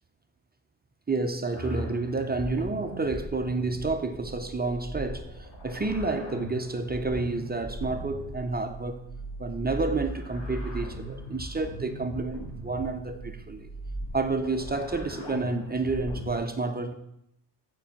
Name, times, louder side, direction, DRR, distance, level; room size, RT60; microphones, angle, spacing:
voice 1, 1.1-9.0 9.4-13.7 14.1-16.9, right 3 dB, 20° right, 0.7 m, -30 dB
sound 1, 1.5-16.4, equal, 75° left, 3.1 m, -39 dB
7.1 x 5.4 x 7.1 m
cardioid pair, 110°, 44 cm